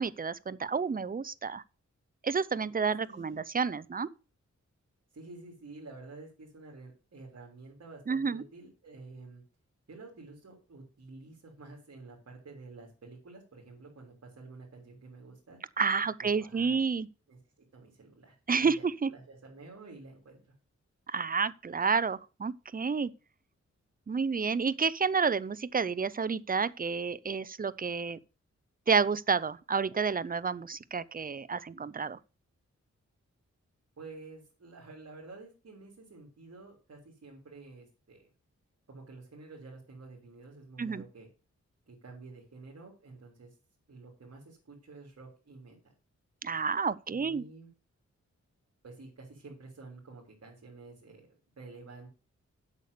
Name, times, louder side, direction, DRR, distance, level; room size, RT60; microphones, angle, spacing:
voice 1, 0.0-1.6 2.2-4.1 8.1-8.4 15.8-17.1 18.5-19.1 21.1-23.1 24.1-28.2 28.9-32.2 40.8-41.0 46.4-47.4, right 5 dB, 30° right, 0.6 m, -30 dB
voice 2, 3.0-3.4 5.1-9.4 9.9-15.6 16.2-16.8 17.3-17.4 17.7-18.3 18.6-20.4 34.0-38.3 38.9-41.3 41.9-43.6 43.9-45.8 47.1-47.7 48.8-52.1, right 3 dB, 60° right, 3.3 m, -50 dB
8.3 x 6.7 x 6.7 m
cardioid pair, 70°, 29 cm